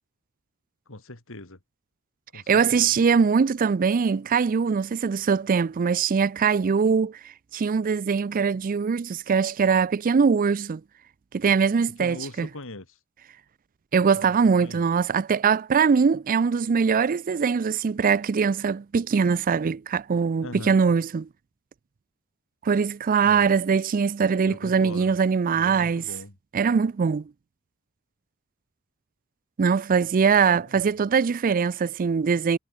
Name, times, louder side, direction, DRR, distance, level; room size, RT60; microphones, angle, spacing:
voice 1, 0.9-1.6 2.3-3.0 12.0-13.0 14.1-14.9 20.4-20.8 23.2-23.6 24.4-25.2 25.5-26.4 30.3-30.9, left 2 dB, 65° left, 3.0 m, -41 dB
voice 2, 2.3-7.2 7.5-10.8 11.3-12.5 13.9-21.3 22.6-26.0 26.5-27.2 29.6-32.6, right 6 dB, 40° right, 0.4 m, -22 dB
head